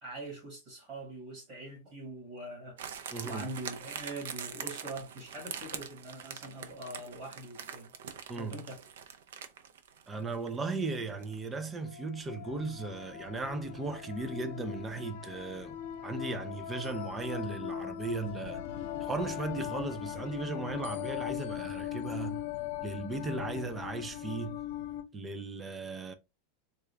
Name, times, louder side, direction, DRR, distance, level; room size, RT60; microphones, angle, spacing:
voice 1, 0.0-7.9 8.4-8.8, right 2 dB, 30° right, 1.7 m, -43 dB
sound 1, 2.8-11.4 11.6-11.7, right 8 dB, 80° right, 0.5 m, -43 dB
voice 2, 3.1-3.5 8.3-8.6 10.1-15.8 16.0-18.7 19.0-22.5 22.8-24.6 25.1-26.1, right 3 dB, 10° right, 0.3 m, -36 dB
sound 2, 10.9-11.0 11.6-25.0, left 11 dB, 55° left, 0.5 m, -40 dB
3.9 x 2.3 x 3.2 m
supercardioid pair, 180°, 0 cm